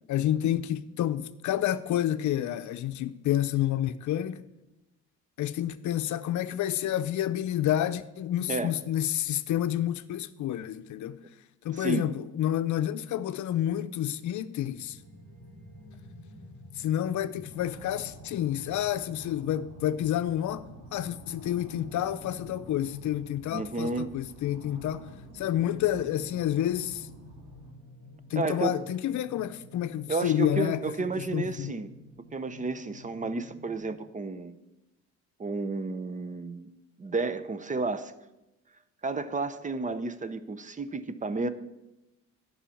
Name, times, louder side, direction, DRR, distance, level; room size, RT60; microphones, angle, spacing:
voice 1, 0.1-4.4 5.4-11.2 11.6-15.0 16.8-25.1 25.3-27.1 28.3-30.8 31.2-31.8, left 11 dB, 75° left, 0.6 m, -29 dB
sound 1, 14.7-33.9, equal, 55° right, 4.6 m, -51 dB
sound 2, 17.5-27.7, right 1 dB, 90° right, 2.7 m, -50 dB
voice 2, 23.5-24.1 28.4-28.7 30.1-31.9 32.3-34.6 35.4-36.7 37.0-38.1 39.0-41.5, right 3 dB, 25° right, 0.7 m, -31 dB
10.0 x 5.6 x 7.1 m
cardioid pair, 90°, 30 cm